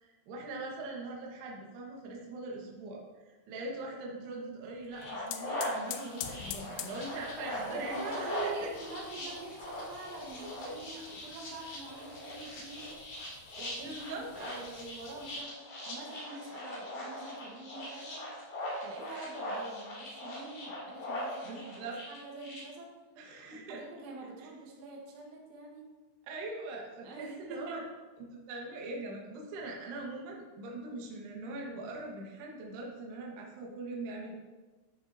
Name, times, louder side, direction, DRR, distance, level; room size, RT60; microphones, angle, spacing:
voice 1, 0.0-8.7 10.4-10.8 13.8-14.3 21.4-22.0 23.2-23.8 24.4-24.5 26.3-27.8 28.3-34.3, right 2 dB, 70° right, -2 dB, 3.2 m, -42 dB
sound 1, 4.8-15.4, left 11 dB, 85° left, 2.5 m, -48 dB
sound 2, 4.9-22.6, left 1 dB, 55° left, 3.7 m, -40 dB
voice 2, 7.7-12.9 13.6-14.0 14.4-18.3 18.8-21.7 22.1-22.9 23.5-25.9 27.0-27.8, right 3 dB, 85° right, -1 dB, 3.7 m, -45 dB
13.0 x 6.1 x 2.7 m, 1.2 s
omnidirectional pair, 5.3 m